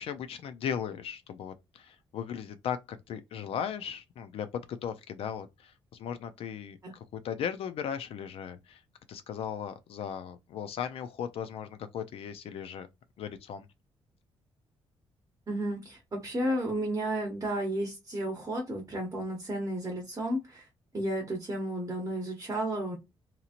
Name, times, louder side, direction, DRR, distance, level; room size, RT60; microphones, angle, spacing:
voice 1, 0.0-8.8 9.1-12.9 13.2-13.7, left 8 dB, 70° left, 0.4 m, -37 dB
voice 2, 15.5-20.7 20.9-23.0, right 1 dB, 30° right, 0.8 m, -32 dB
2.9 x 2.7 x 2.4 m
cardioid pair, 105°, 10 cm